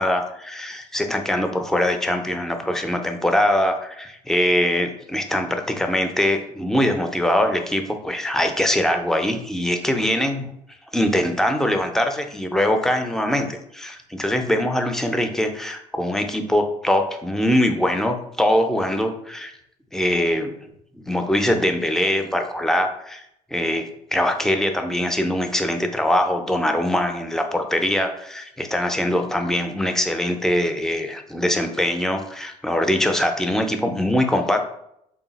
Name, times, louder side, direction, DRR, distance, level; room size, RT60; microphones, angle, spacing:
voice 1, 0.0-10.5 10.9-19.5 19.9-20.6 21.1-23.2 23.5-34.6, left 1 dB, 5° left, 5 dB, 0.4 m, -22 dB
3.8 x 2.2 x 3.9 m, 0.75 s
cardioid pair, 140°, 14 cm